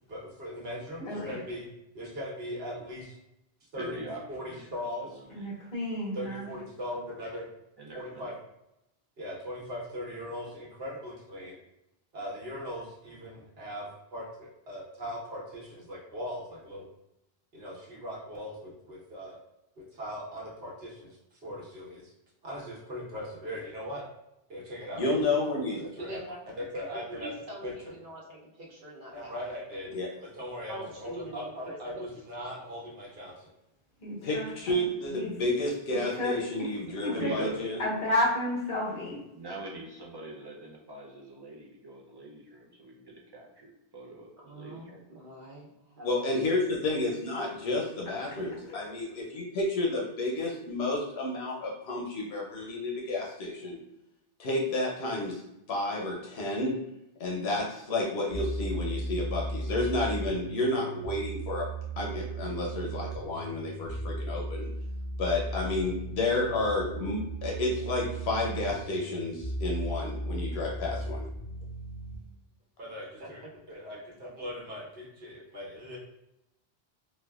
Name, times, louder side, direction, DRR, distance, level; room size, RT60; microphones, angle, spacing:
voice 1, 0.1-1.7 1.9-3.2 3.7-4.0 4.3-5.1 6.1-7.5 7.9-8.3 9.2-11.6 12.1-16.9 17.5-19.4 19.8-22.1 22.4-24.0 24.5-25.0 25.8-26.2 26.6-27.3 27.6-27.9 29.1-29.9 30.2-33.5 72.8-73.4 73.7-76.0, equal, 75° right, -4 dB, 1.2 m, -39 dB
voice 2, 1.0-1.4 5.3-6.4 34.0-35.3 35.9-36.3 36.6-36.7 37.0-37.3 37.8-39.2, left 1 dB, 60° left, -6 dB, 1.3 m, -32 dB
voice 3, 3.8-4.6 5.0-5.5 6.2-6.3 7.8-8.3 36.8-37.6 39.3-44.8, right 2 dB, 30° right, -2 dB, 0.6 m, -43 dB
voice 4, 25.0-25.8 29.9-30.1 34.2-37.8 46.0-53.8 54.4-55.4 55.7-56.7 57.2-61.7 62.0-64.7 65.2-71.3, left 2 dB, 90° left, -2 dB, 0.9 m, -31 dB
voice 5, 26.0-26.4 26.9-29.6 30.7-32.0 44.4-46.3 73.2-73.5, right 1 dB, 55° right, -3 dB, 0.9 m, -45 dB
sound 1, 58.3-72.2, right 2 dB, 15° left, 1.3 m, -36 dB
4.5 x 2.1 x 2.3 m, 0.87 s
omnidirectional pair, 1.0 m